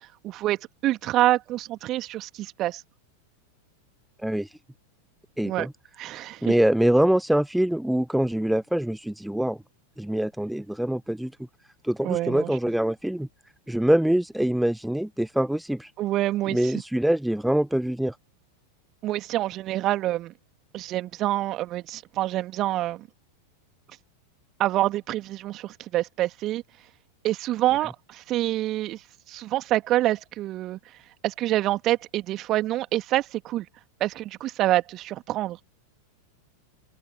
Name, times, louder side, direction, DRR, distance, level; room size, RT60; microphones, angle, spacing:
voice 1, 0.2-2.8 5.4-5.7 6.0-6.5 12.0-12.5 16.0-16.7 19.0-20.3 20.7-23.1 24.6-26.6 27.2-30.8 31.2-33.7 34.0-35.6, right 15 dB, 35° right, 2.3 m, -26 dB
voice 2, 4.2-4.5 5.4-5.7 6.4-9.6 10.0-11.3 11.8-13.3 13.7-15.9 16.5-18.2, right 1 dB, ahead, 0.8 m, -24 dB
open air
figure-of-eight pair, 90°, 0 cm